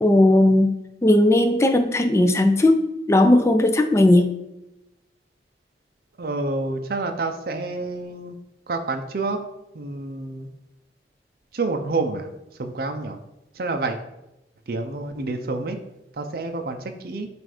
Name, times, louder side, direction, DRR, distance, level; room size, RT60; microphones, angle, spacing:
voice 1, 0.0-0.7 1.0-4.3, left 1 dB, 15° left, 6 dB, 0.4 m, -17 dB
voice 2, 6.2-8.4 8.7-9.4 9.7-10.5 11.5-12.3 12.6-13.2 13.5-14.0 14.7-15.8 16.1-17.3, right 3 dB, 55° right, 5 dB, 0.5 m, -28 dB
7.5 x 2.5 x 4.9 m, 0.92 s
head